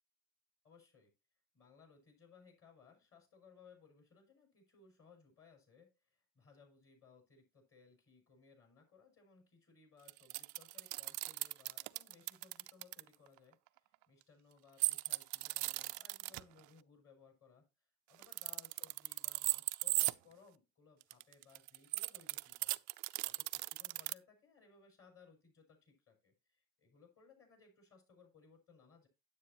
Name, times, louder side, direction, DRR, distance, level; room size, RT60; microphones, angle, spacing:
voice 1, 0.6-1.1 1.5-17.6 18.1-22.8 23.2-29.1, left 5 dB, 35° left, 1 dB, 6.1 m, -64 dB
sound 1, 10.1-13.0 14.8-16.4 18.1-20.1 21.0-24.1, right 22 dB, 50° right, 0.5 m, -37 dB
9.7 x 8.7 x 2.9 m, 0.27 s
hypercardioid pair, 75°, 40 cm